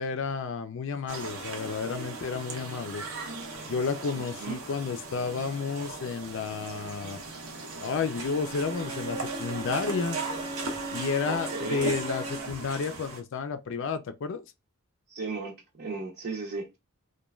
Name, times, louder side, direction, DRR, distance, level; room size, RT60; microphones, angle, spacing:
voice 1, 0.0-3.0 3.6-7.2 7.8-10.2 10.9-14.4, left 5 dB, 60° left, 0.4 m, -31 dB
sound 1, 1.1-13.2, right 3 dB, 85° right, 0.9 m, -38 dB
Bowed string instrument, 8.3-12.7, right 2 dB, 20° right, 0.4 m, -39 dB
voice 2, 11.3-11.9 15.1-16.7, right 3 dB, 50° right, 0.7 m, -35 dB
3.1 x 2.2 x 2.3 m
head